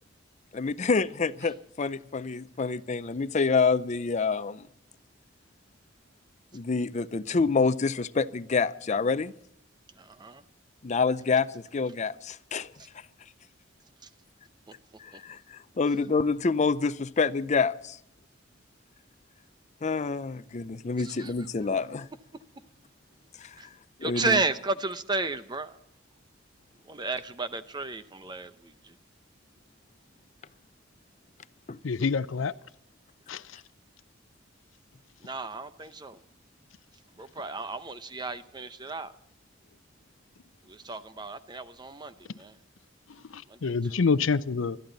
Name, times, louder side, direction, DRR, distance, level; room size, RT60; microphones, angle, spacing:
voice 1, 0.5-4.7 6.5-9.3 10.8-12.7 15.0-18.0 19.8-22.1 23.4-23.6 24.0-24.4 31.7-31.8, left 4 dB, 35° left, 0.5 m, -27 dB
voice 2, 10.0-10.4 12.8-12.9 14.0-14.1 14.7-14.8 15.1-15.2 21.0-21.5 22.3-22.4 23.6-23.7 24.0-25.8 26.8-29.0 35.2-36.2 37.2-39.1 40.6-42.6 43.5-44.0, right 3 dB, 20° right, 0.7 m, -33 dB
voice 3, 31.8-32.5 33.3-33.6 43.1-44.8, left 5 dB, 80° left, 0.6 m, -27 dB
20.5 x 13.0 x 4.0 m
head